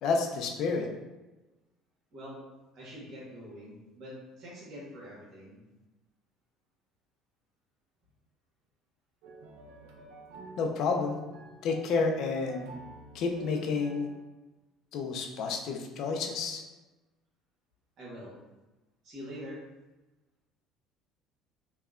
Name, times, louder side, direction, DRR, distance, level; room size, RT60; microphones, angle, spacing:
voice 1, 0.0-0.9 10.6-11.2 11.6-12.7 13.1-14.1 14.9-16.6, left 4 dB, 65° left, 3 dB, 0.4 m, -30 dB
voice 2, 2.1-2.4 2.7-5.6 18.0-18.4 19.0-19.6, equal, 55° right, -5 dB, 1.3 m, -44 dB
sound 1, 9.2-14.2, right 3 dB, 80° right, 0.3 m, -50 dB
2.7 x 2.2 x 2.4 m, 1.1 s
supercardioid pair, 85°, 0 cm